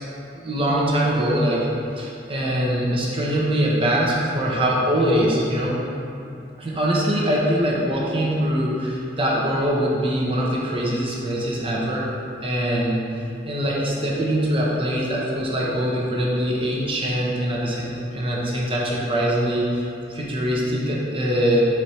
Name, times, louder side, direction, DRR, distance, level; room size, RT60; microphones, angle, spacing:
voice 1, 0.3-1.6 2.0-5.8 6.6-12.1 12.4-13.0 13.4-21.7, equal, 30° right, -5 dB, 1.2 m, -23 dB
4.9 x 4.8 x 5.7 m, 2.5 s
head